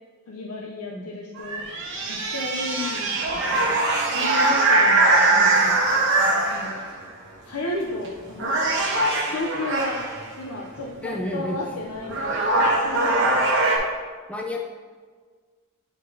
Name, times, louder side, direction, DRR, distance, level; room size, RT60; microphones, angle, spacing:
voice 1, 0.3-1.7 2.1-3.8 4.1-6.8 7.4-8.6 9.3-10.1 10.4-13.4, left 1 dB, 85° left, -2 dB, 0.6 m, -33 dB
sound 1, 1.4-6.9 7.8-8.1 8.4-10.2 11.6-11.7 12.0-13.8, right 2 dB, 60° right, 1.0 m, -21 dB
voice 2, 5.3-5.8 11.0-11.6 14.3-14.7, left 1 dB, 5° left, 0 dB, 0.4 m, -31 dB
9.9 x 3.8 x 2.7 m, 1.5 s
head